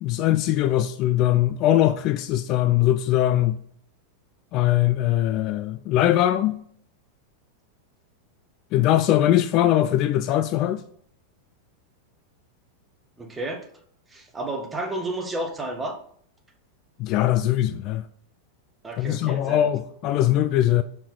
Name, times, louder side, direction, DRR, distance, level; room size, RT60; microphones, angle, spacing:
voice 1, 0.0-3.6 4.5-6.6 8.7-10.8 17.0-18.0 19.0-20.8, left 13 dB, 40° left, 0.3 m, -21 dB
voice 2, 13.2-13.7 14.1-16.0 18.8-19.7, right 2 dB, 15° right, 1.1 m, -31 dB
5.6 x 4.7 x 4.1 m
figure-of-eight pair, 90°, 0 cm